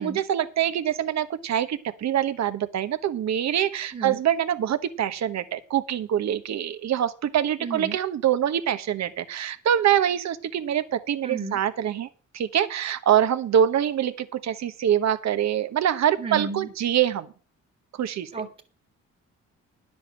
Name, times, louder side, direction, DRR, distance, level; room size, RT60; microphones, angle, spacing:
voice 1, 0.0-12.1 12.3-17.3 18.0-18.3, right 10 dB, 65° right, 11 dB, 1.2 m, -24 dB
voice 2, 7.6-8.0 11.2-11.6 16.2-16.7 18.3-18.6, right 4 dB, 30° right, 5 dB, 1.9 m, -33 dB
10.5 x 7.6 x 6.4 m, 0.38 s
cardioid pair, 90°, 30 cm